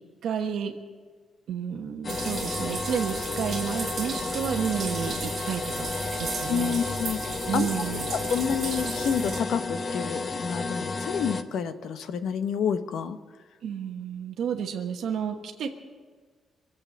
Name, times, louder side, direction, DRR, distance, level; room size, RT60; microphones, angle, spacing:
voice 1, 0.2-0.7 1.5-5.9 6.2-6.8 7.5-8.1 13.6-15.7, right 7 dB, 75° right, 4 dB, 1.2 m, -31 dB
sound 1, 2.0-11.4, left 3 dB, 35° left, 0.8 m, -32 dB
sound 2, 2.1-9.4, right 5 dB, 30° right, 3.0 m, -36 dB
voice 2, 6.5-7.2 7.5-7.7 8.3-13.2, left 7 dB, 80° left, 10 dB, 0.9 m, -29 dB
24.0 x 8.1 x 7.2 m, 1.5 s
wide cardioid pair, 175°, 0 cm